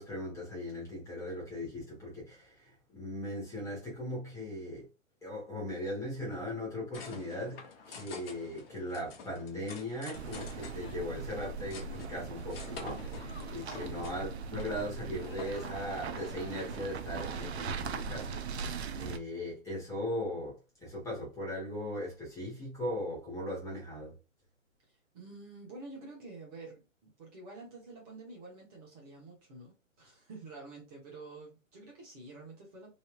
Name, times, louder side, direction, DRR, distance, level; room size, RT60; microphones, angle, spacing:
voice 1, 0.0-4.9 5.2-7.6 7.9-24.1, left 1 dB, 5° left, 1.3 m, -39 dB
sound 1, 6.9-19.2, left 5 dB, 45° left, 0.9 m, -50 dB
sound 2, 10.1-19.2, right 5 dB, 55° right, 0.5 m, -40 dB
voice 2, 13.6-14.3 24.9-32.9, right 3 dB, 30° right, 1.2 m, -49 dB
3.1 x 2.7 x 2.4 m
hypercardioid pair, 145°, 40 cm